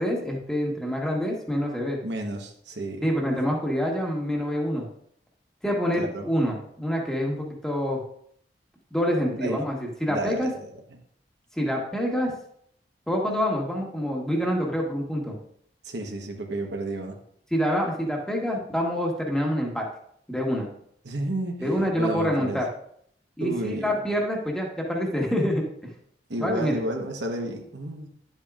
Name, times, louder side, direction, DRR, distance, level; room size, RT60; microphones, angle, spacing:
voice 1, 0.0-2.0 3.0-4.9 5.6-8.0 8.9-10.5 11.6-12.3 13.1-15.4 17.5-19.8 20.3-20.7 21.6-22.7 23.4-25.6 26.4-26.7, equal, 5° left, -1 dB, 1.3 m, -26 dB
voice 2, 2.0-3.0 3.4-3.6 5.9-6.3 9.4-9.6 10.1-10.7 15.8-17.2 21.0-22.6 23.4-24.0 26.3-28.1, right 1 dB, 80° right, 3 dB, 1.2 m, -32 dB
10.5 x 7.9 x 2.5 m, 0.66 s
head